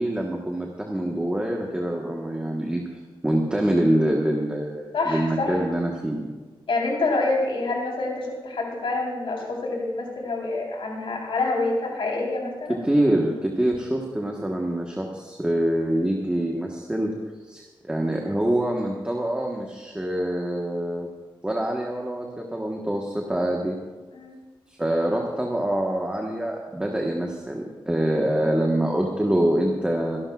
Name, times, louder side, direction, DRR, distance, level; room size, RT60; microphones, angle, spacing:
voice 1, 0.0-2.8 3.2-6.3 12.7-17.1 17.5-21.1 21.4-23.8 24.8-30.2, right 1 dB, 10° right, 0 dB, 1.3 m, -25 dB
voice 2, 4.9-5.5 6.7-12.8 24.1-24.4, left 3 dB, 80° left, -2 dB, 3.9 m, -27 dB
27.0 x 12.0 x 2.4 m, 1.3 s
wide cardioid pair, 110°, 9 cm